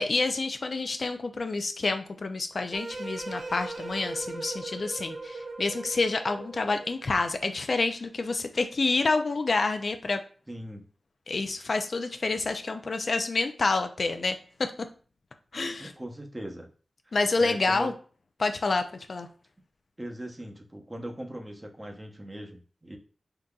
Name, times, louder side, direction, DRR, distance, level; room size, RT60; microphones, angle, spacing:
voice 1, 0.0-10.2 11.3-14.7 15.5-15.9 17.1-17.9 18.4-19.3, left 3 dB, 65° left, 7 dB, 0.3 m, -28 dB
sound 1, 2.7-7.0, right 3 dB, 70° right, 0.5 m, -38 dB
voice 2, 10.5-10.8 15.8-16.7 17.4-17.9 20.0-23.0, right 1 dB, 25° right, 2 dB, 0.7 m, -39 dB
3.7 x 2.6 x 2.3 m, 0.41 s
cardioid pair, 45°, 0 cm